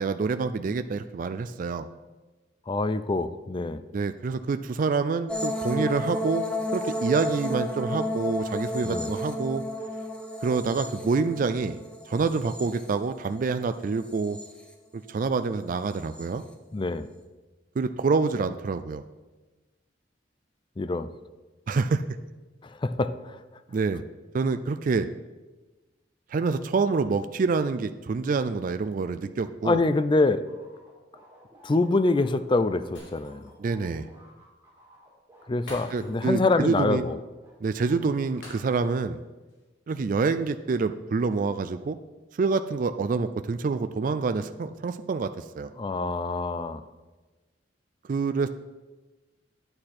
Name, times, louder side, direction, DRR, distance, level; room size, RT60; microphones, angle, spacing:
voice 1, 0.0-1.9 3.9-6.5 6.7-9.6 10.4-11.8 12.1-14.4 15.1-16.4 17.8-19.0 21.7-22.0 23.7-24.0 24.3-25.1 26.3-29.8 33.6-34.1 35.9-37.1 37.6-39.2 39.9-42.0 42.4-45.7 48.1-48.5, right 4 dB, 45° right, 10 dB, 0.3 m, -27 dB
voice 2, 2.7-3.8 8.8-9.1 16.7-17.1 20.8-21.1 22.6-23.4 29.6-30.4 31.6-33.5 35.5-37.2 45.8-46.8, left 3 dB, 25° left, 12 dB, 0.4 m, -25 dB
sound 1, 5.3-13.5 13.9-14.7 15.9-16.3, left 1 dB, 5° left, 0.8 m, -32 dB
sound 2, 30.5-37.5 37.8-38.7, equal, 15° right, 3.9 m, -54 dB
Shatter, 33.0-33.7 34.0-34.1 35.7-36.4 36.7-36.9 38.4-39.1 39.5-39.6, left 1 dB, 75° left, 3.5 m, -47 dB
9.7 x 8.8 x 4.3 m, 1.2 s
head